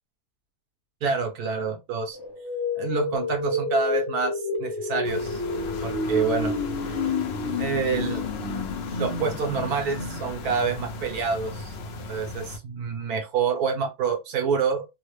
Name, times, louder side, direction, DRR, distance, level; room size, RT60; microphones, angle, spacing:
voice 1, 1.0-2.2 2.8-4.3 4.6-5.4 5.8-6.5 7.6-8.3 9.0-11.7 12.1-14.9, right 5 dB, 80° right, 1.4 m, -27 dB
sound 1, 2.1-11.1, left 3 dB, 20° left, 0.6 m, -30 dB
sound 2, 5.0-12.6, left 2 dB, 60° left, 0.6 m, -37 dB
3.5 x 2.1 x 3.1 m
omnidirectional pair, 1.6 m